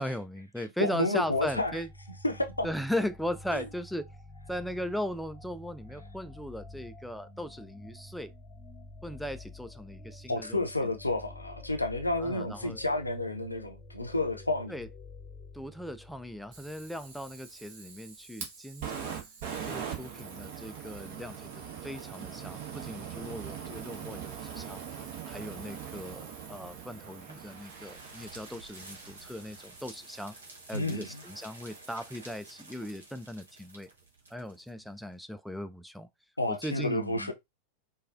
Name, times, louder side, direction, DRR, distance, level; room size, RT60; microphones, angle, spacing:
voice 1, 0.0-1.9 2.6-4.1 4.5-8.3 9.0-10.9 12.2-12.8 14.7-14.9 15.5-19.2 19.7-24.8 25.3-30.4 30.7-33.9 34.3-36.1 36.5-37.3, equal, ahead, 0.3 m, -38 dB
voice 2, 0.6-1.8 2.2-2.7 3.5-3.7 10.3-14.8 30.7-31.2 36.4-37.3, left 2 dB, 85° left, 0.6 m, -31 dB
sound 1, 1.2-17.5, left 2 dB, 30° left, 0.8 m, -49 dB
Fire, 16.5-29.6, right 8 dB, 50° right, 1.2 m, -42 dB
sound 2, 26.3-35.2, right 2 dB, 70° right, 1.5 m, -51 dB
4.6 x 2.3 x 2.5 m
figure-of-eight pair, 90°, 0 cm